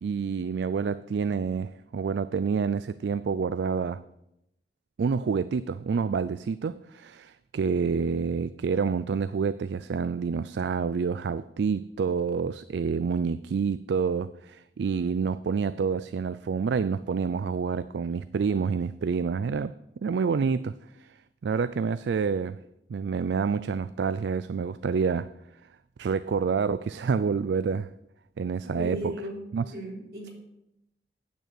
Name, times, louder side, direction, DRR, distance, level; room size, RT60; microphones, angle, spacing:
voice 1, 0.0-4.0 5.0-19.7 20.0-21.2 21.4-22.6 22.9-25.3 26.0-27.9 28.4-29.0 29.5-29.6, right 5 dB, 75° right, 15 dB, 0.3 m, -28 dB
voice 2, 28.6-29.4 29.7-30.3, equal, 60° right, -1 dB, 3.3 m, -35 dB
9.2 x 6.5 x 8.1 m, 0.83 s
head